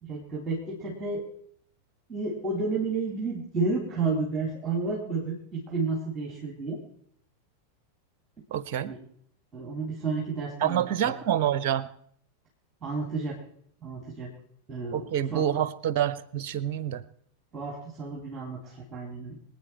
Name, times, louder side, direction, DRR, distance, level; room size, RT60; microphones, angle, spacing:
voice 1, 0.0-1.3 2.1-6.8 8.8-9.0 9.5-11.1 12.8-13.4 13.8-14.3 14.7-15.4 17.5-19.4, right 3 dB, 20° right, 0 dB, 3.4 m, -31 dB
voice 2, 8.5-8.9 10.6-11.9 14.9-17.0, right 10 dB, 45° right, 17 dB, 0.8 m, -27 dB
24.5 x 9.3 x 4.5 m, 0.66 s
figure-of-eight pair, 90°, 0 cm